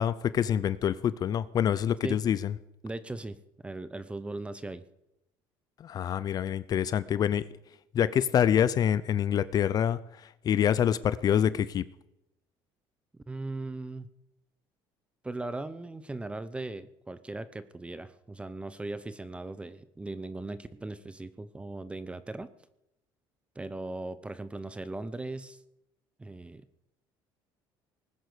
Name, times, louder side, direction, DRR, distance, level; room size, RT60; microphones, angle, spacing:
voice 1, 0.0-2.5 5.8-7.4 7.9-10.0 10.4-11.8, left 9 dB, 45° left, 17 dB, 0.6 m, -26 dB
voice 2, 2.8-4.9 13.3-14.1 15.2-22.5 23.6-25.6 26.2-26.8, right 2 dB, 10° right, 15 dB, 0.8 m, -38 dB
19.0 x 9.7 x 6.8 m, 0.84 s
cardioid pair, 120°, 9 cm